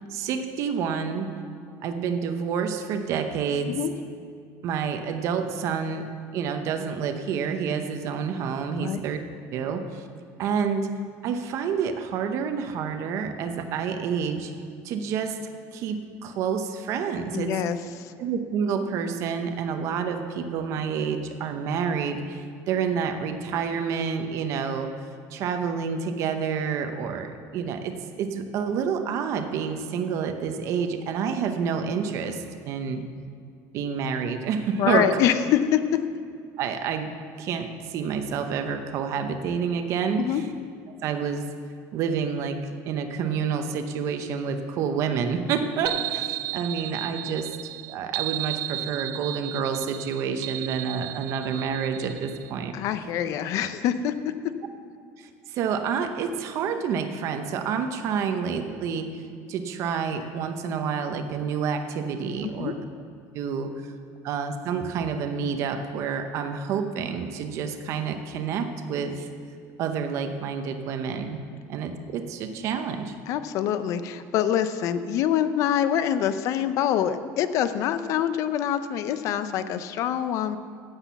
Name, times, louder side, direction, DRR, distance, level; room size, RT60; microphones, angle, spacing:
voice 1, 0.1-1.3 1.8-3.8 4.6-6.0 6.3-9.2 9.5-10.0 10.4-10.9 11.2-14.5 14.8-15.4 15.7-17.5 18.2-24.9 25.3-33.0 33.7-35.2 36.6-37.1 37.4-40.4 41.0-41.5 41.9-42.6 42.8-47.5 47.9-52.7 55.2-59.1 59.5-62.8 63.3-63.9 64.2-69.3 69.8-71.4 71.7-73.1, right 6 dB, 45° right, 6 dB, 0.8 m, -28 dB
voice 2, 17.3-18.1 34.8-36.0 40.2-40.4 52.7-54.1 62.4-62.7 73.3-80.6, left 10 dB, 50° left, 12 dB, 0.6 m, -25 dB
sound 1, 45.9-52.5, right 16 dB, 85° right, 0.4 m, -34 dB
10.0 x 8.1 x 7.0 m, 2.3 s
cardioid pair, 170°, 7 cm